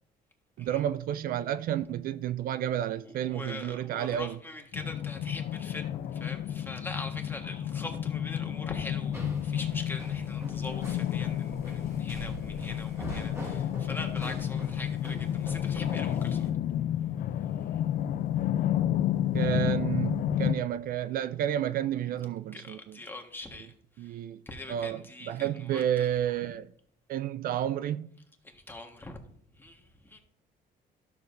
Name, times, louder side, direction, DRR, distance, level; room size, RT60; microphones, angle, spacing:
voice 1, 0.6-4.4 19.3-23.0 24.0-24.4 24.7-26.7 27.1-28.1, right 11 dB, 60° right, 0.4 m, -31 dB
voice 2, 3.0-16.5 22.5-24.1 24.4-26.1 28.4-29.2 29.5-30.2, left 2 dB, 10° left, 1.4 m, -43 dB
sound 1, 4.7-20.5, left 10 dB, 55° left, 0.5 m, -31 dB
sound 2, 9.1-16.5, right 1 dB, 15° right, 2.9 m, -44 dB
12.5 x 7.0 x 2.6 m
cardioid pair, 110°, 17 cm